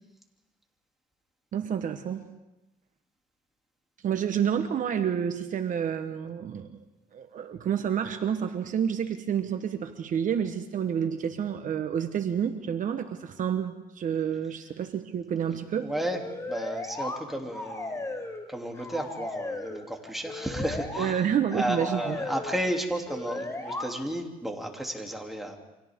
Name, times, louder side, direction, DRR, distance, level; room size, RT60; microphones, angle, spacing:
voice 1, 1.5-2.3 4.0-6.8 7.1-15.9 21.0-22.2, right 8 dB, 50° right, 7 dB, 1.2 m, -29 dB
voice 2, 15.8-21.2 21.5-25.6, right 1 dB, ahead, 1 dB, 2.9 m, -33 dB
sound 1, 16.1-17.2 17.5-18.5 18.7-19.8 20.3-21.1 21.5-22.5 23.1-23.9, left 2 dB, 15° left, 3.8 m, -36 dB
29.5 x 25.0 x 3.7 m, 1.0 s
cardioid pair, 110°, 17 cm